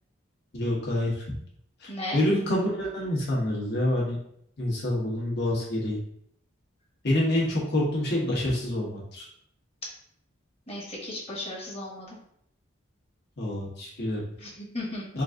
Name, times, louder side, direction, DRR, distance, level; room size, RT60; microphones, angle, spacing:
voice 1, 0.5-1.1 1.8-4.2 4.6-6.0 7.0-9.2 13.4-14.2 15.1-15.2, left 1 dB, 55° left, -4 dB, 1.2 m, -27 dB
voice 2, 1.9-2.2 10.7-12.1 14.4-15.0, left 1 dB, 30° left, -4 dB, 1.2 m, -35 dB
3.9 x 2.6 x 3.6 m, 0.70 s
head